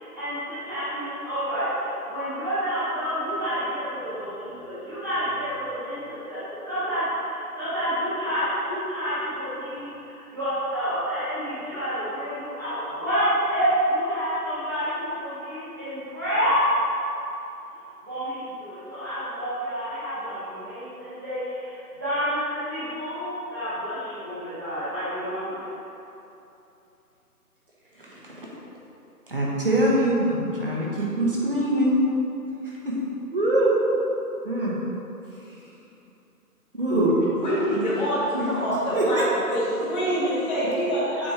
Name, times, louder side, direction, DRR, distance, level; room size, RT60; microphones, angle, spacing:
voice 1, 0.0-16.7 18.0-25.6, equal, 10° right, -16 dB, 1.2 m, -29 dB
voice 2, 28.0-28.5 29.3-32.0 32.6-33.0 33.3-33.8 34.4-34.7 36.7-37.2 37.7-37.8 38.3-38.5 38.9-39.3, right 1 dB, 35° right, -5 dB, 1.0 m, -23 dB
voice 3, 37.4-39.2 39.5-41.3, equal, 30° left, -13 dB, 1.3 m, -26 dB
8.7 x 4.1 x 3.3 m, 2.9 s
hypercardioid pair, 175°, 47 cm